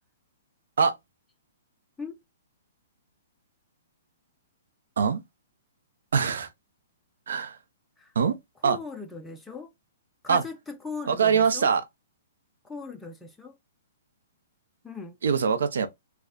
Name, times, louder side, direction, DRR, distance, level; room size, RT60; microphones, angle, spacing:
voice 1, 6.1-6.5 7.3-7.6 8.1-8.4 8.6-8.8 10.3-10.4 11.1-11.8 15.2-15.9, right 6 dB, 80° right, 0.8 m, -23 dB
voice 2, 8.6-9.7 10.2-11.7 12.6-13.6 14.8-15.2, left 4 dB, 5° left, 0.5 m, -39 dB
3.3 x 2.3 x 3.8 m
hypercardioid pair, 155°, 0 cm